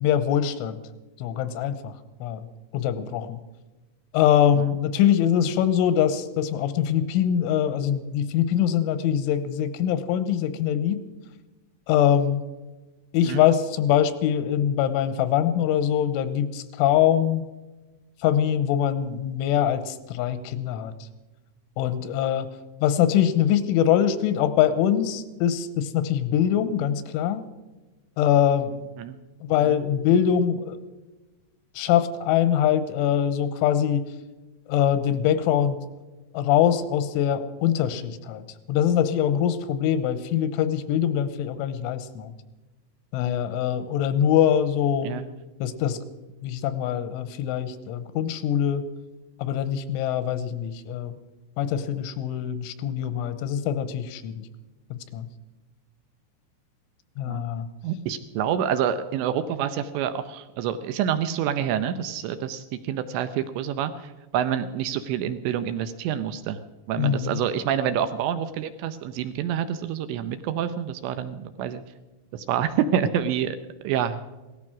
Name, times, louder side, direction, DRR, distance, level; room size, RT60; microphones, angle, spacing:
voice 1, 0.0-0.8 1.2-1.9 2.2-2.5 2.7-3.4 4.1-11.0 11.9-12.4 13.1-17.5 18.2-20.9 21.8-22.5 22.8-27.4 28.2-28.9 29.4-30.8 31.8-34.1 34.7-35.8 36.3-38.4 38.7-42.3 43.1-45.2 45.6-46.0 46.4-48.9 49.4-51.2 51.6-54.4 54.9-55.3 57.2-57.7 67.0-67.4, left 10 dB, 85° left, 12 dB, 3.3 m, -23 dB
voice 2, 57.8-66.6 66.9-71.8 72.3-73.6 73.8-74.2, right 9 dB, 80° right, 10 dB, 2.7 m, -27 dB
17.5 x 14.0 x 6.0 m, 1.2 s
omnidirectional pair, 5.6 m